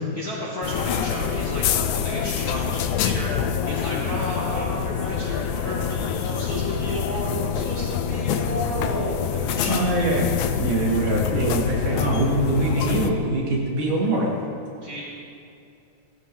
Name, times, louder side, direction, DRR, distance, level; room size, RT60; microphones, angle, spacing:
voice 1, 0.1-9.9 14.8-15.1, equal, 35° left, -7 dB, 2.0 m, -32 dB
sound 1, 0.6-13.1, left 8 dB, 80° left, 2.0 m, -26 dB
voice 2, 9.7-10.2 10.6-14.3, right 2 dB, 85° right, -4 dB, 4.3 m, -23 dB
19.0 x 13.5 x 3.5 m, 2.5 s
omnidirectional pair, 3.6 m